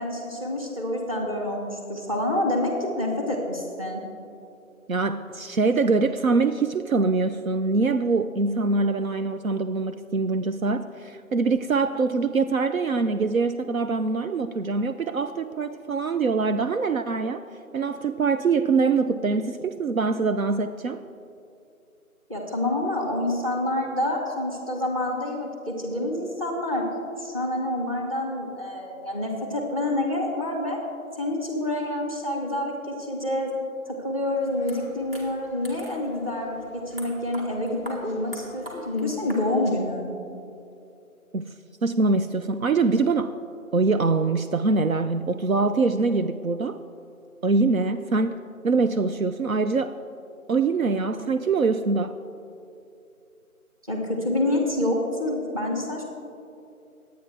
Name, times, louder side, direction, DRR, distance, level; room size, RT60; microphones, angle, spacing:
voice 1, 0.0-4.0 22.3-26.9 27.2-30.8 31.2-33.5 33.9-36.6 36.9-40.1 53.9-56.0, left 1 dB, 25° right, 0 dB, 1.5 m, -27 dB
voice 2, 4.9-17.4 17.7-21.0 41.3-41.5 41.8-43.3 43.7-46.8 47.4-48.4 48.6-49.9 50.5-52.2, right 4 dB, 70° right, 9 dB, 0.6 m, -24 dB
sound 1, 34.4-39.7, right 1 dB, 40° right, 2.3 m, -44 dB
20.5 x 9.0 x 3.4 m, 2.6 s
figure-of-eight pair, 165°, 43 cm